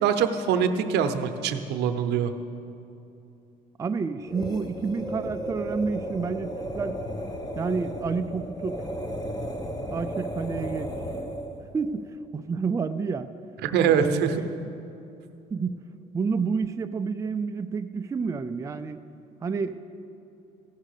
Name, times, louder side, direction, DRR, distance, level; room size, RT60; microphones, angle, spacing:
voice 1, 0.0-2.3 13.6-14.3, right 7 dB, 80° right, 8 dB, 0.7 m, -23 dB
voice 2, 3.8-7.0 7.6-8.8 9.9-10.9 11.7-13.3 13.9-14.7 15.5-15.8 16.1-19.0 19.4-19.8, right 5 dB, 20° right, 8 dB, 0.4 m, -29 dB
sound 1, 4.2-11.6, equal, 25° left, 1.0 m, -34 dB
15.5 x 6.2 x 6.6 m, 2.7 s
cardioid pair, 110°, 17 cm